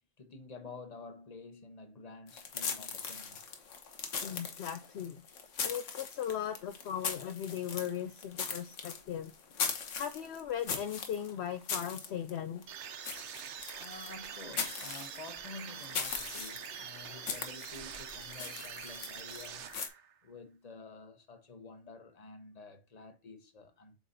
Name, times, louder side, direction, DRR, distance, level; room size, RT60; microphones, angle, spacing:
voice 1, 0.2-3.6 13.8-19.7 20.2-23.9, left 3 dB, 35° left, 1.1 m, -50 dB
sound 1, 2.3-19.9, left 6 dB, 90° left, 1.4 m, -40 dB
voice 2, 4.2-5.2 5.6-9.3 10.0-12.6, left 9 dB, 65° left, 0.8 m, -38 dB
sound 2, 12.7-20.2, right 8 dB, 75° right, 1.0 m, -45 dB
7.8 x 4.7 x 2.7 m
omnidirectional pair, 1.2 m